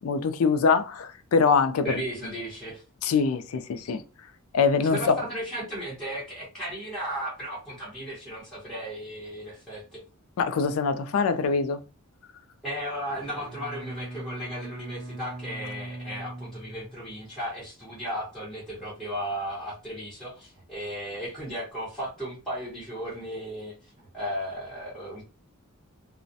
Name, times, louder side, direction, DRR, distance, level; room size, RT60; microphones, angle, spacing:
voice 1, 0.0-1.9 3.0-4.0 4.5-5.2 10.4-11.8, left 5 dB, 65° left, 0.3 m, -23 dB
voice 2, 1.8-2.8 4.8-10.0 12.6-25.3, equal, ahead, 0.8 m, -35 dB
Bowed string instrument, 13.0-17.4, right 1 dB, 70° right, 0.6 m, -40 dB
2.3 x 2.1 x 2.6 m
head